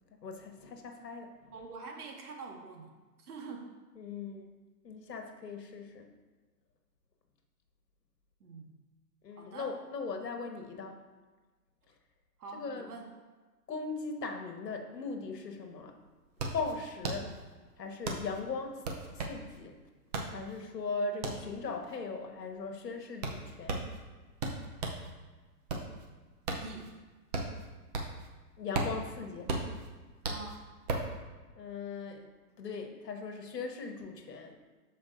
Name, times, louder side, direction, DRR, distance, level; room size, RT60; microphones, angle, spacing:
voice 1, 0.2-1.3 4.0-4.5 4.8-6.1 9.2-11.0 12.5-12.9 13.7-15.9 16.5-17.3 17.8-18.9 19.2-19.7 20.3-23.8 28.6-29.5 31.5-32.3 32.6-34.6, left 4 dB, 80° left, 4 dB, 1.5 m, -39 dB
voice 2, 1.5-2.9 3.2-3.8 8.4-8.7 9.4-9.8 12.4-13.1 26.6-26.9 30.2-30.6, right 4 dB, 65° right, 1 dB, 1.7 m, -45 dB
sound 1, 15.4-15.5 15.8-25.1 25.5-28.3 28.6-31.2, right 3 dB, 25° right, 0.7 m, -36 dB
13.0 x 5.1 x 2.6 m, 1.3 s
hypercardioid pair, 150°, 49 cm